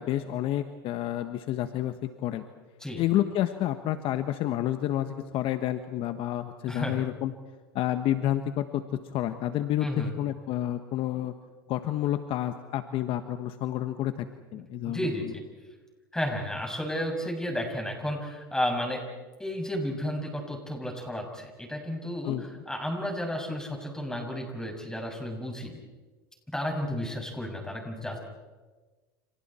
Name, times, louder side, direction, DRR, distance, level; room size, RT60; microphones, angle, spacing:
voice 1, 0.0-2.4 2.9-7.3 7.7-11.3 11.7-14.3 14.5-15.3 22.2-22.6, left 12 dB, 50° left, 9 dB, 1.4 m, -29 dB
voice 2, 6.7-7.0 9.8-10.1 14.5-15.4 16.1-19.0 19.4-25.7 26.5-28.2, equal, 5° left, 3 dB, 6.5 m, -32 dB
30.0 x 29.5 x 4.5 m, 1.3 s
hypercardioid pair, 100°, 12 cm